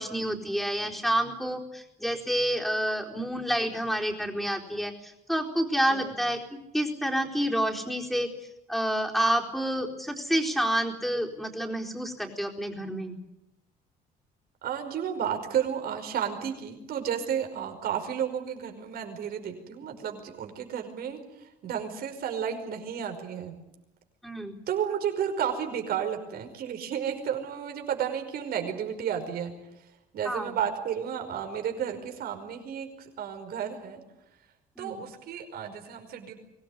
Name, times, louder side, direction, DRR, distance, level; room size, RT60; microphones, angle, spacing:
voice 1, 0.0-8.3 8.7-13.2 24.2-24.6 30.2-30.6 34.8-35.0, right 1 dB, ahead, 1 dB, 4.3 m, -29 dB
voice 2, 14.6-23.5 24.7-29.5 30.1-34.0 34.8-36.3, right 8 dB, 65° right, 5 dB, 5.2 m, -32 dB
24.0 x 18.0 x 9.9 m, 0.90 s
cardioid pair, 110°, 17 cm